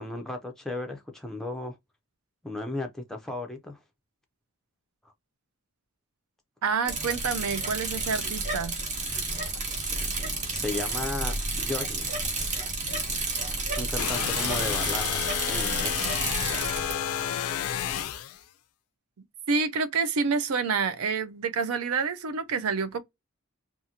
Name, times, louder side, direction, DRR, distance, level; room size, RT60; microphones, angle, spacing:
voice 1, 0.0-1.8 2.4-3.8 5.0-5.1 9.7-10.0 10.5-12.1 13.8-16.0, left 2 dB, ahead, 0.3 m, -35 dB
voice 2, 6.6-8.7 19.5-23.0, right 5 dB, 80° right, 0.5 m, -28 dB
Bicycle, 6.8-16.9, right 3 dB, 35° right, 0.7 m, -31 dB
sound 1, 9.1-14.4, equal, 60° right, 1.2 m, -50 dB
sound 2, 14.0-18.4, left 10 dB, 80° left, 0.3 m, -30 dB
2.6 x 2.4 x 2.7 m
head